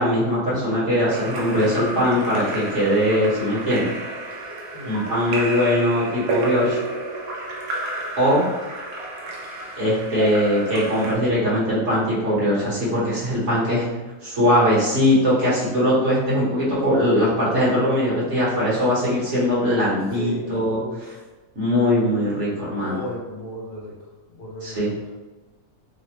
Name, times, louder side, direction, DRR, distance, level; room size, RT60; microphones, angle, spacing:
voice 1, 0.0-3.9 4.9-6.8 8.2-8.4 9.8-13.9 14.2-21.1 21.5-23.0 24.6-24.9, equal, 50° right, -9 dB, 1.3 m, -21 dB
Splash splatter / Drip / Trickle dribble, 1.1-11.2, right 2 dB, 75° right, 1.0 m, -31 dB
voice 2, 20.2-21.2 22.6-24.0 24.3-25.0, left 1 dB, 75° left, -2 dB, 1.2 m, -35 dB
3.3 x 2.1 x 2.9 m, 1.2 s
omnidirectional pair, 1.7 m